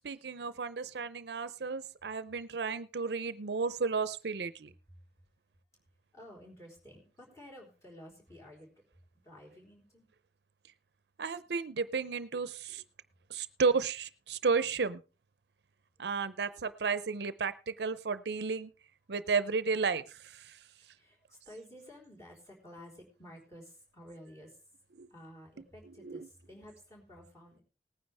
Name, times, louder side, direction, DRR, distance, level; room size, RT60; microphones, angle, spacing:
voice 1, 0.0-4.7 11.2-12.8 13.3-15.0 16.0-18.7 19.1-20.6 25.0-25.1 26.0-26.3, right 5 dB, 75° right, 15 dB, 0.6 m, -33 dB
voice 2, 6.1-8.7 9.2-10.1 21.0-24.6 25.1-27.6, equal, 15° left, 0 dB, 4.0 m, -52 dB
18.5 x 9.6 x 3.4 m, 0.34 s
head